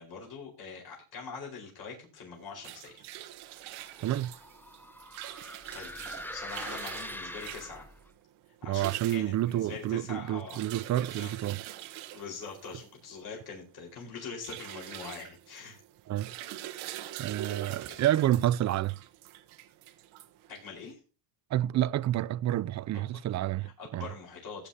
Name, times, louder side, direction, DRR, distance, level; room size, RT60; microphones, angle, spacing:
voice 1, 0.0-3.0 5.7-6.0 6.3-7.8 8.6-11.4 12.1-15.8 17.0-17.2 17.5-18.1 20.5-21.0 22.9-23.2 23.6-24.7, left 5 dB, 50° left, 4.6 m, -44 dB
sound 1, 2.4-20.9, right 13 dB, 75° right, 1.2 m, -45 dB
sound 2, 3.6-8.1, left 1 dB, 5° left, 0.7 m, -43 dB
voice 2, 4.0-4.3 8.7-11.6 16.1-16.3 17.2-19.0 21.5-24.1, right 13 dB, 40° right, 0.4 m, -29 dB
15.5 x 9.2 x 2.8 m
cardioid pair, 100°, 48 cm